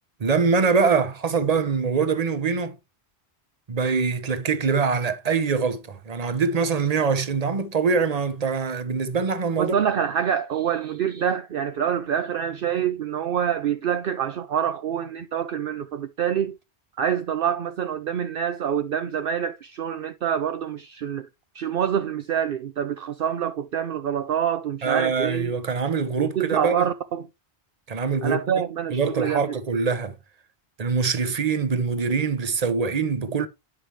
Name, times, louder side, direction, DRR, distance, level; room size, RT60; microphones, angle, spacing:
voice 1, 0.2-2.7 3.7-9.7 24.8-26.9 27.9-28.4 28.9-30.1 30.8-33.5, right 5 dB, 40° right, 1.0 m, -24 dB
voice 2, 9.6-16.6 17.0-21.3 21.5-25.5 26.2-27.3 28.2-29.6, right 9 dB, 65° right, 0.8 m, -26 dB
9.7 x 5.8 x 3.1 m
omnidirectional pair, 1.1 m